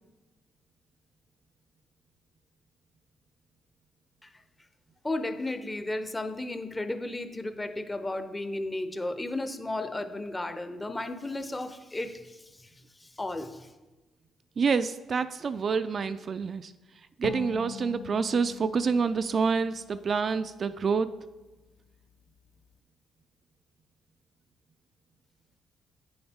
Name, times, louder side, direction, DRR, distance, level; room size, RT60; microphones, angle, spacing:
voice 1, 5.0-13.7, left 2 dB, 15° left, 0.7 m, -34 dB
voice 2, 14.6-16.7 17.2-21.1, right 5 dB, 45° right, 0.3 m, -27 dB
sound 1, 17.2-20.7, left 6 dB, 65° left, 0.8 m, -43 dB
8.6 x 7.0 x 3.5 m
cardioid pair, 90°, 0 cm